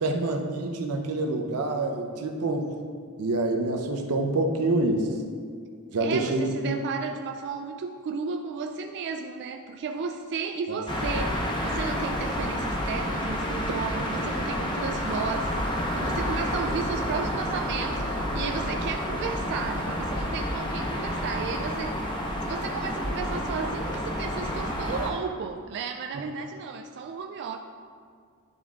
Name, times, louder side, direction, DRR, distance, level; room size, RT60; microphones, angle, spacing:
voice 1, 0.0-2.7 3.2-5.2 5.9-6.8 10.7-10.8, right 2 dB, 85° right, 3 dB, 0.7 m, -26 dB
voice 2, 6.0-22.0 22.4-27.6, right 5 dB, 50° right, 4 dB, 0.3 m, -34 dB
sound 1, 10.9-25.1, equal, 20° left, 0.8 m, -29 dB
10.5 x 3.7 x 3.6 m, 2.1 s
head